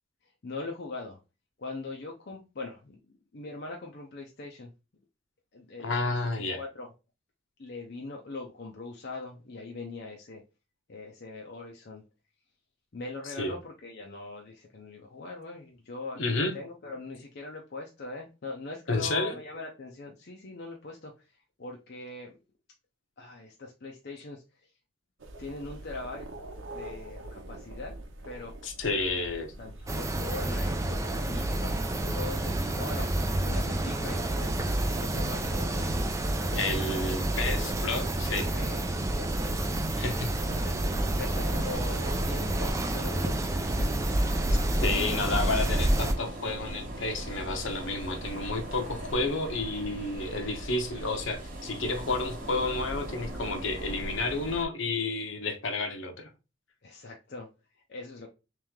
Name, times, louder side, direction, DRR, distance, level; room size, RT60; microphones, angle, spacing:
voice 1, 0.2-1.2 1.6-3.0 3.3-4.7 5.5-6.2 6.6-6.9 7.6-10.4 10.9-12.0 12.9-22.3 23.2-24.7 25.4-26.3 26.7-28.0 28.2-28.5 29.1-29.2 29.6-31.7 32.0-35.9 36.2-37.3 38.5-40.0 40.5-40.9 41.2-45.1 56.8-58.3, left 3 dB, 50° left, 0.6 m, -42 dB
voice 2, 5.8-6.6 13.4-13.5 16.2-16.5 18.9-19.3 28.6-29.5 36.5-38.5 40.0-40.3 44.5-56.3, left 3 dB, 70° left, 0.9 m, -31 dB
sound 1, 25.2-42.7, right 1 dB, 70° right, 0.8 m, -43 dB
sound 2, 29.9-46.1, right 1 dB, 15° right, 0.3 m, -29 dB
sound 3, 40.3-54.6, right 1 dB, 40° right, 0.9 m, -39 dB
3.3 x 3.1 x 3.5 m
head